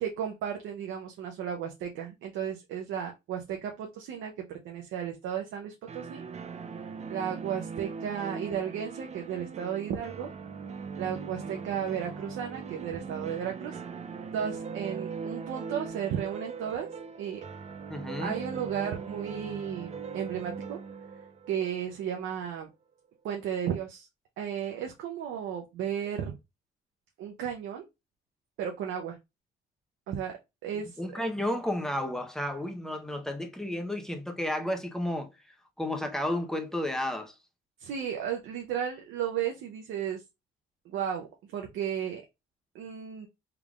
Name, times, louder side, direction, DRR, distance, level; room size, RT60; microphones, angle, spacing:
voice 1, 0.0-4.3 4.6-6.2 7.1-10.3 11.0-13.8 14.3-16.9 17.2-17.4 18.2-20.8 21.5-22.7 23.2-24.1 24.4-26.4 27.2-27.8 28.6-29.2 30.1-30.4 30.6-31.0 37.8-40.2 40.9-41.3 41.5-42.2 42.7-43.3, right 8 dB, 85° right, 0.7 m, -34 dB
sound 1, 5.9-22.6, right 5 dB, 35° right, 0.5 m, -40 dB
voice 2, 17.9-18.4 31.0-37.3, left 1 dB, ahead, 0.8 m, -32 dB
3.6 x 3.4 x 2.4 m
cardioid pair, 90°, 20 cm